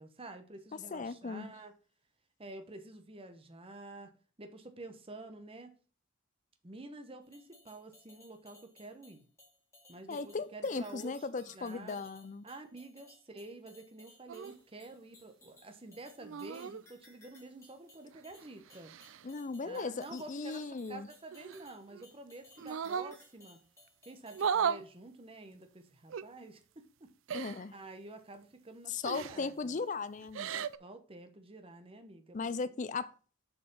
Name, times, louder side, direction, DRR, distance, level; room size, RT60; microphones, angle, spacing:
voice 1, 0.0-1.7 2.4-4.1 4.4-5.7 6.6-9.3 9.9-12.1 12.4-18.9 19.6-23.6 24.0-29.8 30.8-32.8, right 2 dB, 25° right, 0.9 m, -49 dB
voice 2, 0.9-1.5 10.1-12.4 19.2-21.1 27.3-27.7 28.9-30.7 32.3-33.1, left 4 dB, 35° left, 0.5 m, -37 dB
sound 1, 7.2-24.5, left 2 dB, 15° left, 2.9 m, -61 dB
sound 2, 14.3-14.5 16.2-16.8 18.1-19.2 21.3-22.0 22.6-23.1 24.3-24.8 26.1-26.2 27.3-27.6 29.0-29.5 30.2-30.8, right 7 dB, 70° right, 0.4 m, -36 dB
6.7 x 4.9 x 5.4 m
head